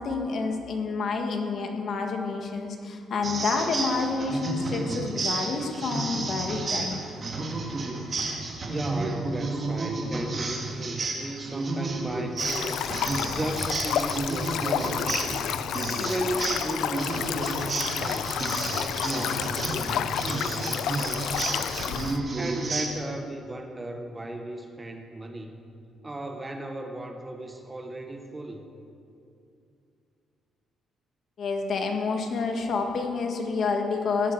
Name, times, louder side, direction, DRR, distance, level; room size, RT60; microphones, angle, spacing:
voice 1, 0.0-7.0 31.4-34.3, left 4 dB, 50° left, 3 dB, 1.7 m, -29 dB
sound 1, 3.2-22.8, right 3 dB, 35° right, 2.2 m, -31 dB
voice 2, 8.6-15.5 16.0-18.4 18.7-21.8 22.3-25.6 26.0-28.7, right 1 dB, 15° right, 5 dB, 1.0 m, -36 dB
Stream, 12.4-22.2, left 10 dB, 80° left, 0.4 m, -30 dB
18.5 x 11.0 x 4.7 m, 2.6 s
cardioid pair, 135°, 0 cm